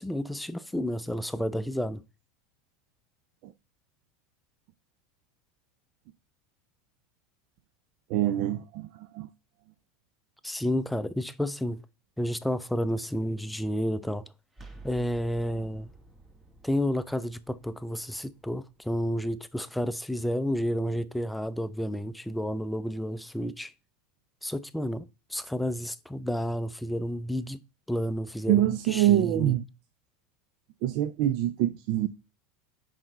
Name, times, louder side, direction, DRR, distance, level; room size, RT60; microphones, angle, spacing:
voice 1, 0.0-2.0 10.4-11.8 12.2-14.3 14.8-15.9 16.6-23.7 24.4-25.0 25.3-27.6 27.9-28.6 28.9-29.5, equal, 5° left, 0.5 m, -30 dB
voice 2, 8.1-9.3 28.5-29.6 30.8-32.1, right 13 dB, 60° right, 0.5 m, -25 dB
sound 1, 14.5-20.2, right 2 dB, 20° right, 1.2 m, -52 dB
5.8 x 5.0 x 3.9 m
hypercardioid pair, 95°, 0 cm